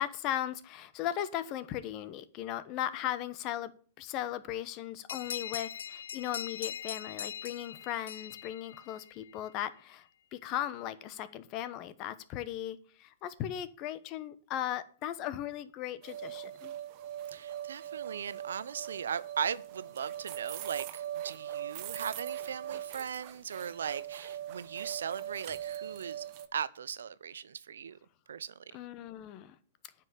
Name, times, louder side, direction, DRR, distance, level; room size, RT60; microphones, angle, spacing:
voice 1, 0.0-3.7 4.0-16.8 28.7-29.5, left 12 dB, 40° left, 1.0 m, -37 dB
sound 1, 5.1-9.3, left 8 dB, 80° left, 0.4 m, -41 dB
sound 2, 16.0-26.5, right 11 dB, 50° right, 1.1 m, -41 dB
voice 2, 17.3-26.3 26.5-28.0 28.3-28.6, right 7 dB, 80° right, 0.6 m, -38 dB
9.2 x 5.5 x 8.2 m
hypercardioid pair, 115°, 0 cm